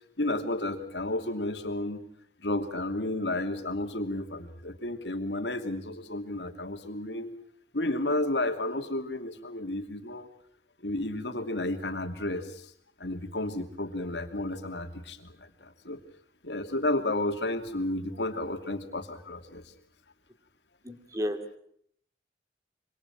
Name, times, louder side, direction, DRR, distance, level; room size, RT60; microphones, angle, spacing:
voice 1, 0.2-2.0 2.4-7.3 7.7-10.3 10.8-12.7 13.0-16.0 16.4-19.6, left 1 dB, 80° left, 7 dB, 2.8 m, -32 dB
voice 2, 20.8-21.6, equal, 20° right, 8 dB, 2.6 m, -33 dB
27.0 x 24.5 x 6.0 m, 0.65 s
head